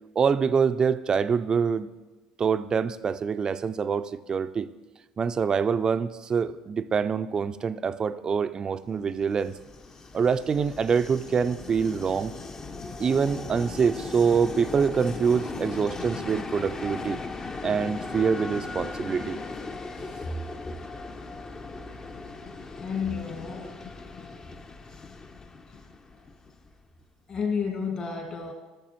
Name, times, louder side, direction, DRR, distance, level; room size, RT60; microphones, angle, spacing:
voice 1, 0.2-1.9 2.4-4.7 5.2-9.5 10.1-12.3 13.0-17.2 17.6-19.4, right 6 dB, 35° right, 13 dB, 0.4 m, -25 dB
Train, 9.1-26.9, left 3 dB, 25° left, 0.6 m, -38 dB
voice 2, 22.8-23.8 27.3-28.5, left 6 dB, 45° left, 2 dB, 2.0 m, -31 dB
12.5 x 6.7 x 3.1 m, 1.2 s
hypercardioid pair, 65°, 2 cm